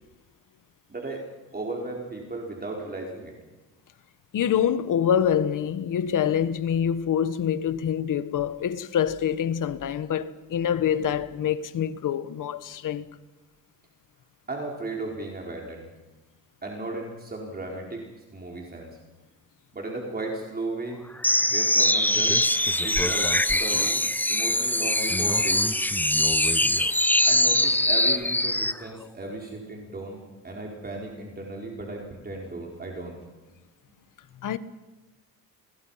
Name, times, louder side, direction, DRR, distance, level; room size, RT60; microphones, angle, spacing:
voice 1, 0.9-1.2 1.5-3.3 14.5-15.9 16.6-19.0 19.7-21.0 21.5-22.3 22.7-23.3 23.6-24.0 24.3-25.6 26.5-26.8 27.2-33.2, right 2 dB, 25° right, 4.6 m, -35 dB
voice 2, 4.3-13.1 34.4-34.6, left 9 dB, 60° left, 1.4 m, -25 dB
sound 1, 21.2-28.8, left 1 dB, 5° left, 0.8 m, -22 dB
30.0 x 21.5 x 5.8 m
cardioid pair, 105°, 36 cm